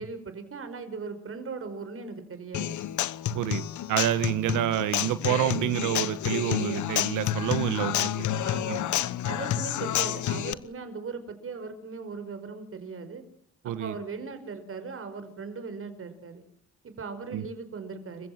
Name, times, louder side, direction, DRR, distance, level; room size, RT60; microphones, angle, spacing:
voice 1, 0.0-2.8 8.4-8.8 9.2-13.2 13.6-16.4 16.8-18.3, right 4 dB, 45° right, 10 dB, 5.3 m, -38 dB
Human voice / Acoustic guitar, 2.5-10.5, left 10 dB, 75° left, 1.2 m, -29 dB
voice 2, 3.3-8.1 8.4-8.8 13.6-14.0 17.3-17.5, right 12 dB, 85° right, 13 dB, 1.4 m, -28 dB
28.5 x 15.5 x 7.6 m, 0.64 s
cardioid pair, 90°, 30 cm